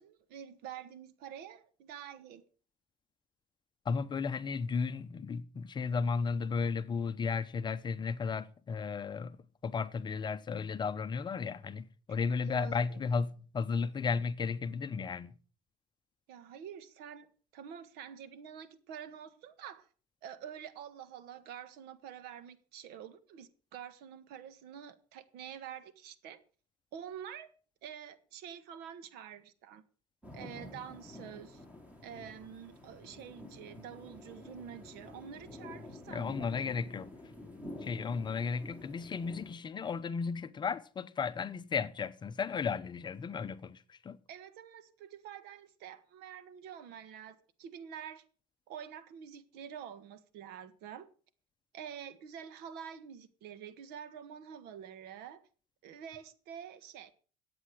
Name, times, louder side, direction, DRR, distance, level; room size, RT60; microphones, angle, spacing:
voice 1, 0.0-2.4 12.4-13.0 16.3-19.9 20.2-26.4 26.9-27.5 27.8-29.8 30.3-31.6 32.0-36.8 44.3-48.2 48.7-51.1 51.7-55.4 55.8-57.1, right 9 dB, 65° right, 1.6 m, -47 dB
voice 2, 3.9-9.4 9.6-15.3 36.1-37.1 37.8-44.2, left 5 dB, 25° left, 0.7 m, -34 dB
sound 1, 30.2-39.5, left 1 dB, 10° right, 4.0 m, -49 dB
14.5 x 8.7 x 6.4 m
supercardioid pair, 120°, 17 cm